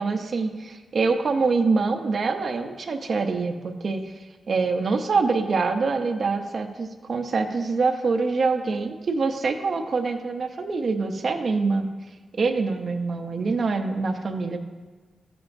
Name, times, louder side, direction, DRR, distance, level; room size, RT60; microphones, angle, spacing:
voice 1, 0.0-4.1 4.5-11.9 12.4-14.6, right 4 dB, 50° right, 4 dB, 0.7 m, -25 dB
14.0 x 7.7 x 2.6 m, 1.3 s
wide cardioid pair, 130°, 0 cm